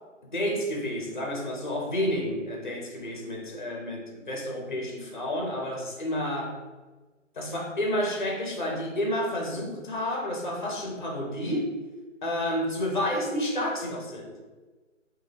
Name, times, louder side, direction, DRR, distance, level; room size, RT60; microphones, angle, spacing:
voice 1, 0.3-6.6 7.3-11.7 12.2-14.3, equal, 40° left, 0 dB, 0.5 m, -30 dB
2.6 x 2.2 x 3.2 m, 1.3 s
hypercardioid pair, 175°, 39 cm